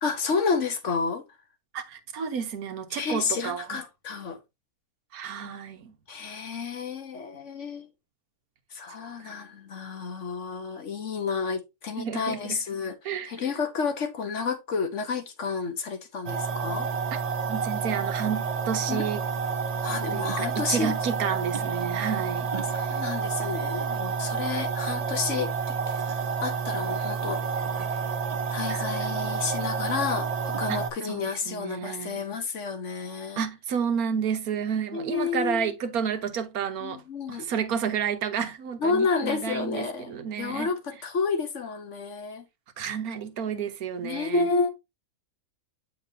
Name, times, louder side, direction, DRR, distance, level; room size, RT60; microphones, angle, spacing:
voice 1, 0.0-1.2 2.9-4.4 6.1-7.9 8.7-12.9 13.3-16.9 18.9-19.0 19.8-20.9 22.7-27.4 28.5-33.4 34.9-35.7 36.8-37.5 38.8-42.5 44.0-44.7, left 5 dB, 55° left, 1.3 m, -30 dB
voice 2, 1.7-3.8 5.1-5.9 9.2-9.3 12.0-12.6 13.0-13.3 17.5-19.2 20.1-22.5 22.8-23.0 28.7-28.8 30.7-30.8 31.1-32.2 33.4-37.0 37.3-40.7 42.8-44.5, right 7 dB, 85° right, 1.4 m, -31 dB
sound 1, 16.3-30.9, right 5 dB, 55° right, 0.4 m, -29 dB
8.2 x 4.6 x 2.7 m
omnidirectional pair, 1.5 m